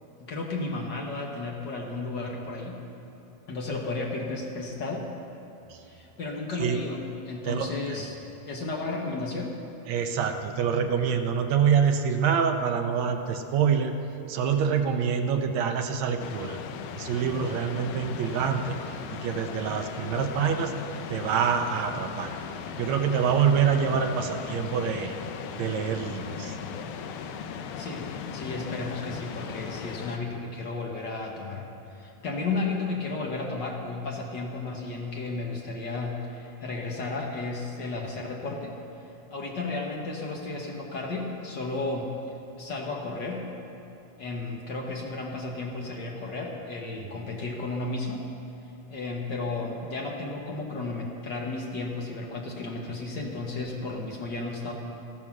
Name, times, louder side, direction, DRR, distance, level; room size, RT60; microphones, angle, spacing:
voice 1, 0.2-2.8 3.5-5.1 5.9-8.2 8.4-9.5 27.8-38.7 39.3-42.1 42.6-43.5 44.2-48.2 48.9-54.7, left 3 dB, 55° left, -1 dB, 1.3 m, -33 dB
voice 2, 7.5-8.1 9.9-14.0 14.3-16.6 17.0-18.8 19.1-20.7 21.1-22.3 22.8-25.1 25.6-26.6 47.0-47.1, right 7 dB, 70° right, 5 dB, 1.7 m, -26 dB
sound 1, 16.2-30.2, left 7 dB, 80° left, 2.2 m, -38 dB
14.0 x 13.0 x 6.1 m, 3.0 s
omnidirectional pair, 3.8 m